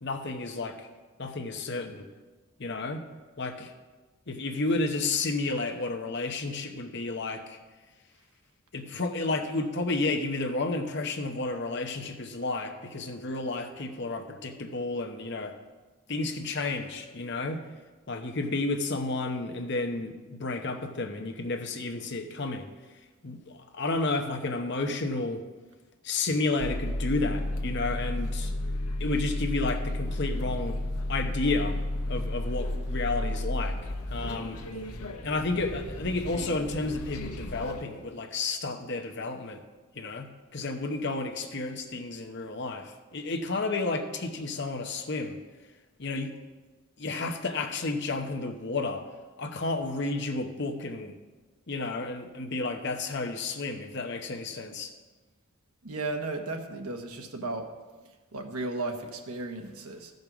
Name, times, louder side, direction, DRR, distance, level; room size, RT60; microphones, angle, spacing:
voice 1, 0.0-0.9 1.2-2.1 2.6-3.0 3.4-3.7 4.3-7.6 8.7-15.5 16.1-17.6 18.1-22.7 23.2-25.4 26.0-28.5 29.0-30.8 31.1-31.8 32.1-33.8 34.1-34.6 35.2-39.6 39.9-45.4 46.0-46.3 47.0-49.1 49.4-51.1 51.7-54.9, left 3 dB, 50° left, 5 dB, 0.9 m, -31 dB
sound 1, 26.6-37.8, left 1 dB, 85° left, 1.0 m, -32 dB
voice 2, 55.8-57.7 58.3-60.1, right 2 dB, 80° right, 5 dB, 1.2 m, -34 dB
14.0 x 5.3 x 6.1 m, 1.3 s
head